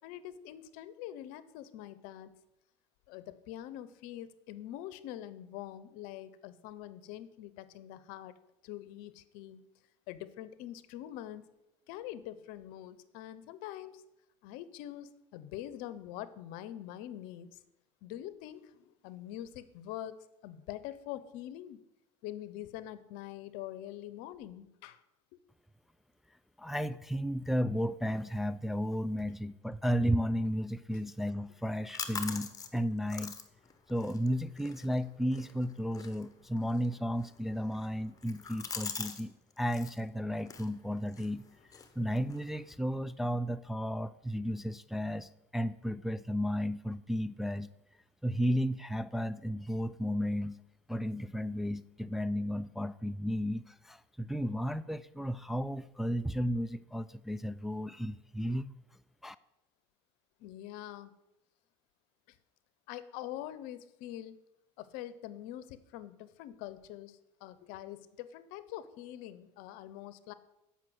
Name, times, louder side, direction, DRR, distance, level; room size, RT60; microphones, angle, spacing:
voice 1, 0.0-2.3 3.1-8.3 8.6-9.6 10.1-11.5 11.9-14.0 14.4-17.6 18.0-20.2 20.4-21.8 22.2-25.0 25.3-25.4 60.4-61.1 62.9-64.4 64.8-70.3, left 12 dB, 70° left, 15 dB, 0.7 m, -44 dB
voice 2, 26.6-33.3 33.9-41.4 42.0-47.7 48.2-50.6 50.9-58.7 59.2-59.4, equal, ahead, 11 dB, 0.3 m, -33 dB
sound 1, 31.5-39.2 39.5-40.0 40.4-42.7, left 5 dB, 25° left, 1.1 m, -45 dB
7.6 x 5.6 x 7.5 m, 0.90 s
supercardioid pair, 85°, 15 cm